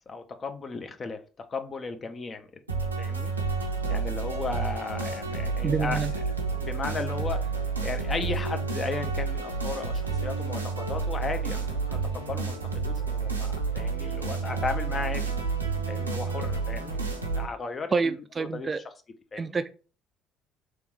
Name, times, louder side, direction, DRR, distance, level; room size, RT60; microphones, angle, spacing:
voice 1, 0.1-2.6 3.0-3.3 3.9-6.0 6.5-7.5 7.8-13.5 13.7-15.3 15.9-17.0 17.3-18.7 19.3-19.6, left 4 dB, 35° left, 0.6 m, -35 dB
sound 1, 2.7-17.5, right 4 dB, 85° right, 0.5 m, -30 dB
voice 2, 5.6-6.1 17.9-18.8 19.4-19.7, right 4 dB, 30° right, 0.3 m, -27 dB
3.4 x 3.0 x 4.5 m
figure-of-eight pair, 50°, 0 cm